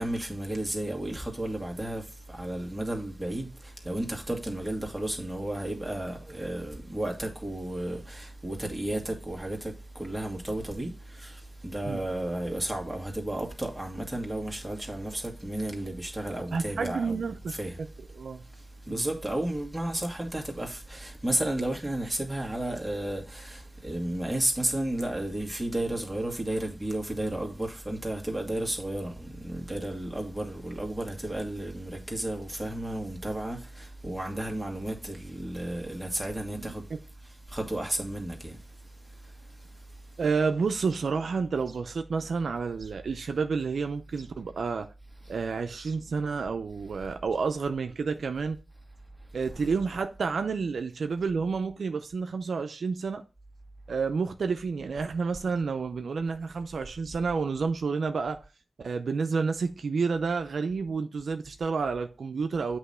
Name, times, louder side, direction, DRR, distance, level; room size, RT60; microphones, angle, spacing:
voice 1, 0.0-17.2 17.5-17.8 18.5-36.9 37.5-38.6 39.1-39.7, right 1 dB, 10° right, 2.0 m, -33 dB
voice 2, 16.5-17.5 18.1-18.4 18.9-19.1 36.6-37.0 40.2-44.9 45.3-48.6 49.3-53.2 53.9-58.4 58.8-62.8, right 5 dB, 80° right, 0.5 m, -30 dB
8.1 x 3.1 x 5.5 m
cardioid pair, 60°, 0 cm